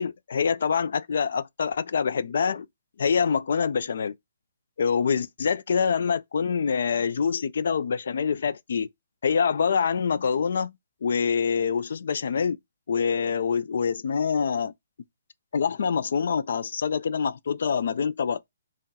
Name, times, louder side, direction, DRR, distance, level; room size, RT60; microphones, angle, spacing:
voice 1, 0.0-2.7 3.0-4.1 4.8-8.9 9.2-10.7 11.0-12.6 12.9-14.7 15.5-18.5, left 6 dB, 65° left, 0.4 m, -25 dB
3.7 x 2.1 x 4.0 m
hypercardioid pair, 155°, 0 cm